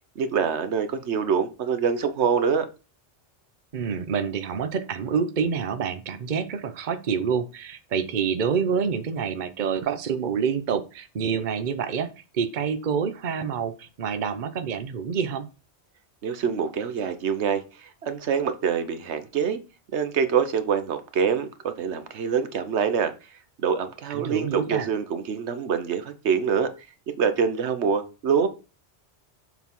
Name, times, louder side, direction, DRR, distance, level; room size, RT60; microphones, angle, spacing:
voice 1, 0.2-2.7 16.2-19.6 19.9-23.1 23.6-26.7 27.2-28.5, right 6 dB, 90° right, 1.1 m, -25 dB
voice 2, 3.7-15.5 24.1-24.9, right 6 dB, 50° right, 0.9 m, -27 dB
7.2 x 4.1 x 5.4 m
omnidirectional pair, 1.1 m